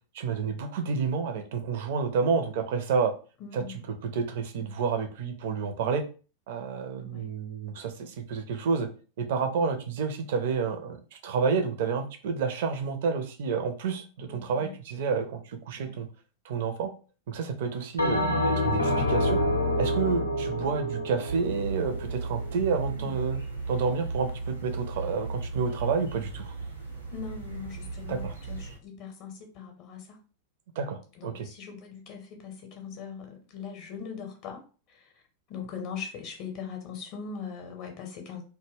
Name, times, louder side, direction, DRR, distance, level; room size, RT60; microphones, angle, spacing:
voice 1, 0.1-3.1 3.5-6.0 6.5-8.9 9.2-16.1 16.4-16.9 17.3-19.4 19.8-23.4 23.7-26.5 28.1-28.3 30.8-31.5, right 5 dB, 55° right, 0.4 m, -29 dB
voice 2, 3.4-3.8 7.0-7.3 14.2-14.8 15.7-16.0 22.9-23.1 27.1-30.2 31.2-34.6 34.9-35.1 35.5-38.4, left 6 dB, 40° left, 0.6 m, -41 dB
Bell, 18.0-22.6, left 1 dB, 85° left, 0.5 m, -27 dB
sound 1, 21.3-28.8, right 3 dB, 80° right, 0.8 m, -35 dB
2.1 x 2.1 x 3.3 m
figure-of-eight pair, 90°, 0 cm